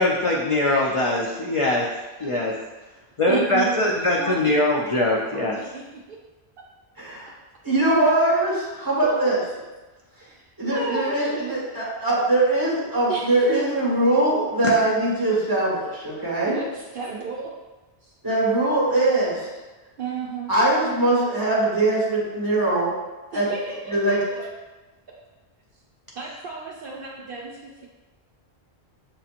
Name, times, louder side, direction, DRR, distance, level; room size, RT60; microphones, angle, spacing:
voice 1, 0.0-1.9 2.2-2.5 3.2-5.6 14.6-14.7, left 2 dB, 50° left, -2 dB, 0.4 m, -22 dB
voice 2, 2.1-2.4 3.3-3.9 4.2-6.2 9.0-9.2 10.2-11.6 13.1-13.6 16.4-17.6 20.0-20.5 23.3-24.5 25.1-25.2 26.1-27.9, right 4 dB, 60° right, -2 dB, 0.7 m, -33 dB
voice 3, 7.6-9.4 10.6-16.6 18.2-19.5 20.5-22.9 23.3-23.5 23.9-24.2, right 2 dB, 20° right, -7 dB, 1.4 m, -21 dB
7.0 x 2.8 x 2.5 m, 1.2 s
omnidirectional pair, 1.1 m